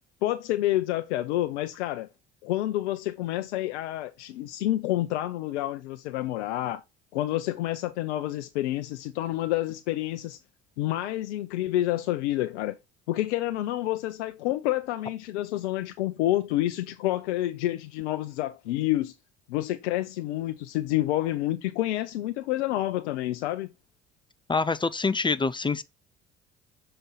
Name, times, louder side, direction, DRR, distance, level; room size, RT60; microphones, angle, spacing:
voice 1, 0.2-2.1 2.4-6.8 7.1-10.4 10.8-12.7 13.1-19.1 19.5-23.7, left 15 dB, 80° left, 0.6 m, -28 dB
voice 2, 24.5-25.8, left 4 dB, 15° left, 0.5 m, -25 dB
6.6 x 4.4 x 3.9 m
hypercardioid pair, 60°, 34 cm